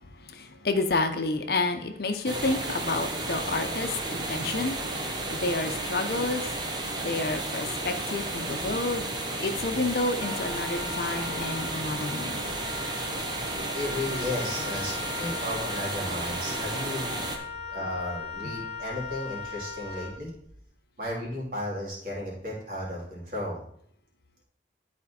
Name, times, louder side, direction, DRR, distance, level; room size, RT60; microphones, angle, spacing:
voice 1, 0.0-6.4 7.0-9.1 9.4-12.5 18.4-18.5, left 2 dB, 55° left, 6 dB, 0.7 m, -30 dB
sound 1, 2.2-17.4, right 2 dB, 25° right, 0.9 m, -33 dB
Wind instrument woodwind instrument, 10.2-20.6, left 5 dB, 75° right, 1.8 m, -39 dB
voice 2, 13.7-17.2 17.6-20.3 21.0-23.6, left 1 dB, 50° right, -4 dB, 2.7 m, -34 dB
11.0 x 4.3 x 4.2 m, 0.68 s
head